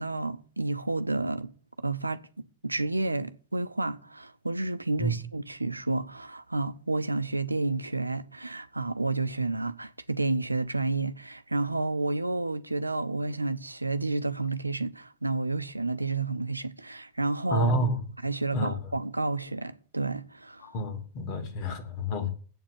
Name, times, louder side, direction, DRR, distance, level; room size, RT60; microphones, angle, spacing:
voice 1, 0.0-1.5 1.8-2.2 2.6-17.7 18.2-20.7, right 2 dB, 85° right, 0.7 m, -30 dB
voice 2, 17.5-18.0 18.5-18.7 20.6-22.3, equal, 45° left, 2.6 m, -28 dB
8.2 x 7.3 x 8.4 m
figure-of-eight pair, 90°, 0 cm